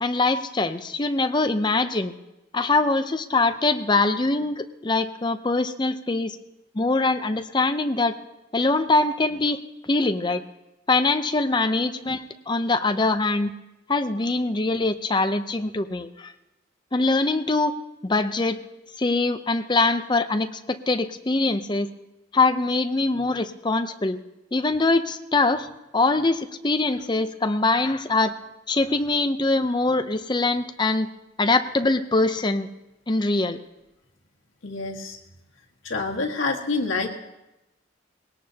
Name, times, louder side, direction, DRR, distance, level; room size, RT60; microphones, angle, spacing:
voice 1, 0.0-2.1 2.5-6.4 6.7-8.1 8.5-9.6 9.9-10.4 10.9-13.5 13.9-16.3 16.9-17.7 18.0-18.6 19.0-21.9 22.3-24.2 24.5-25.7 25.9-28.3 28.7-31.1 31.4-32.7 33.1-33.6, left 3 dB, 25° left, 9 dB, 0.6 m, -23 dB
voice 2, 34.6-35.2 35.8-37.1, left 3 dB, 90° left, 1 dB, 1.7 m, -27 dB
20.5 x 17.5 x 2.9 m, 0.96 s
head